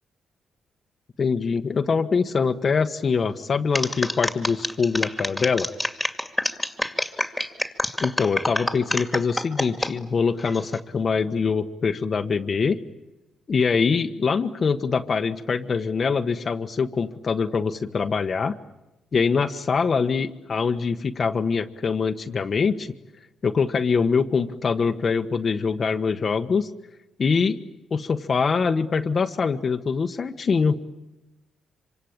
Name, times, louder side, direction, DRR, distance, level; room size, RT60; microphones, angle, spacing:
voice 1, 1.2-5.7 8.0-12.8 13.5-18.5 19.1-22.9 23.4-26.7 27.2-27.6 27.9-30.8, left 5 dB, 45° left, 6 dB, 1.3 m, -23 dB
sound 1, 3.7-9.9 10.4-10.8, left 1 dB, 5° left, 2.3 m, -27 dB
26.0 x 25.0 x 8.8 m, 0.98 s
cardioid pair, 90°, 0 cm